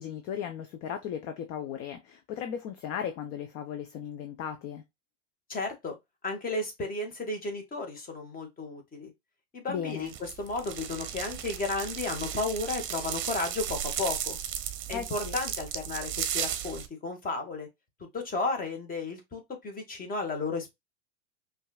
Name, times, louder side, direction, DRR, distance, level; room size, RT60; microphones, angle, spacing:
voice 1, 0.0-4.8 9.7-10.1 14.9-15.4, left 8 dB, 40° left, 0.7 m, -36 dB
voice 2, 5.5-6.0 6.2-9.1 9.5-14.4 14.9-17.7 18.1-20.7, left 3 dB, 25° left, 1.6 m, -33 dB
sound 1, 10.1-16.9, right 10 dB, 35° right, 0.8 m, -35 dB
5.3 x 2.7 x 2.3 m
hypercardioid pair, 95°, 36 cm